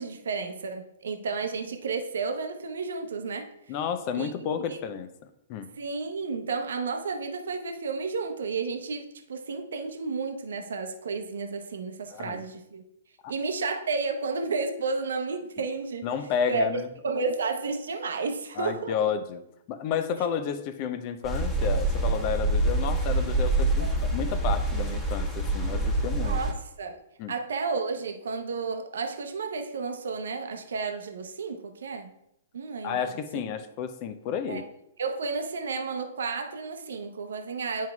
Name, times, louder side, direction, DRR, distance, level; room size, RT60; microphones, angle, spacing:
voice 1, 0.0-3.5 4.1-4.3 4.7-4.8 5.8-12.8 13.3-16.1 16.5-16.7 17.0-18.9 23.8-23.9 26.2-27.0 27.3-32.1 32.5-33.4 34.5-34.6 35.0-37.9, right 4 dB, 70° right, 5 dB, 0.8 m, -32 dB
voice 2, 3.7-5.7 12.1-12.4 13.2-13.3 16.0-16.9 18.6-19.4 19.7-26.4 27.2-27.3 32.8-34.6, left 7 dB, 40° left, 10 dB, 0.6 m, -31 dB
sound 1, 21.2-26.5, right 2 dB, 10° left, 1.4 m, -26 dB
10.5 x 4.6 x 2.4 m, 0.80 s
figure-of-eight pair, 110°, 0 cm